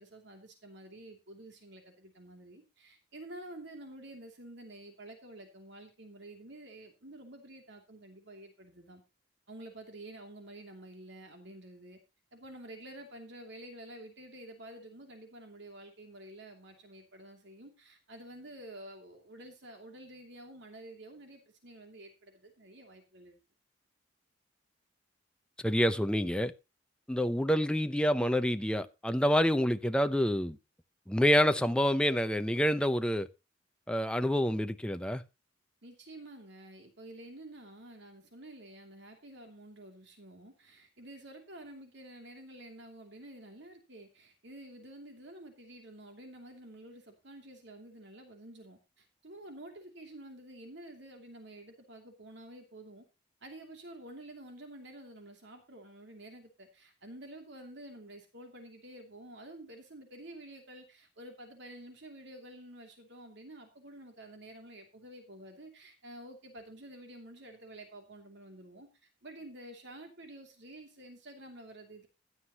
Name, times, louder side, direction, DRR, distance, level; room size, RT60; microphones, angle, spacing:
voice 1, 0.0-9.0 9.5-12.0 12.3-23.4 35.8-53.0 53.4-68.9 69.2-72.1, right 1 dB, 60° right, 2.8 m, -50 dB
voice 2, 25.6-26.5 27.1-30.6 31.1-33.3 33.9-35.2, equal, 5° left, 0.7 m, -27 dB
16.0 x 11.5 x 3.0 m
head